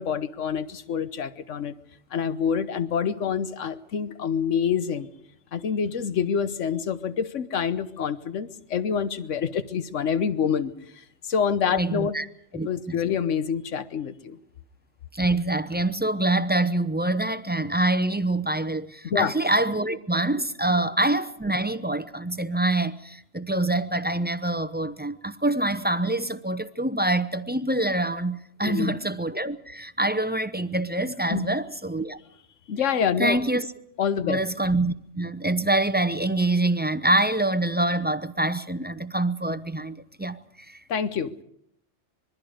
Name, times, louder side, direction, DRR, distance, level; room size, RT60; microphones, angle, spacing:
voice 1, 0.0-1.7 2.1-5.1 5.5-12.1 12.6-14.4 19.0-19.3 28.6-29.0 31.3-31.5 32.7-33.4 34.0-34.4 40.9-41.4, left 7 dB, 80° left, 1.3 m, -27 dB
voice 2, 11.7-12.2 12.5-13.0 15.1-32.2 33.2-33.6 34.3-40.4 40.7-40.8, right 2 dB, 10° right, 0.6 m, -25 dB
25.5 x 22.5 x 5.1 m
omnidirectional pair, 1.2 m